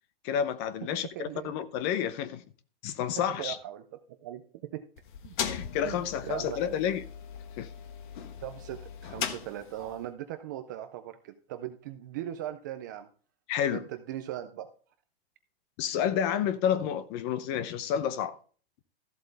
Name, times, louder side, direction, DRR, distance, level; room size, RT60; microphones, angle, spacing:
voice 1, 0.2-2.4 2.8-3.6 5.4-7.0 7.6-7.7 13.5-13.8 15.8-18.4, left 9 dB, 25° left, 0.6 m, -30 dB
voice 2, 1.2-1.5 3.4-3.8 4.2-4.8 5.2-5.4 5.8-6.8 8.4-13.1 13.7-14.7, right 12 dB, 20° right, 0.3 m, -39 dB
sound 1, 5.0-10.0, left 8 dB, 50° left, 1.3 m, -39 dB
13.5 x 7.8 x 3.3 m
hypercardioid pair, 160°, 30 cm